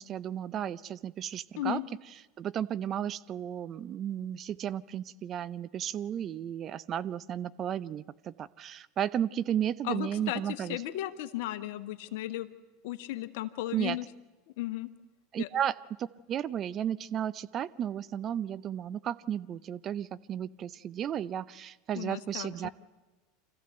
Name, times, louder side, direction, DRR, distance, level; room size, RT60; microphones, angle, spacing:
voice 1, 0.0-1.8 2.4-10.8 13.7-14.0 15.3-22.7, right 10 dB, 40° right, 17 dB, 0.6 m, -34 dB
voice 2, 9.8-12.5 12.8-14.0 14.6-14.9 15.4-15.5 21.9-22.7, left 15 dB, 65° left, 10 dB, 1.2 m, -35 dB
25.0 x 14.5 x 7.9 m, 1.2 s
hypercardioid pair, 85°, 0 cm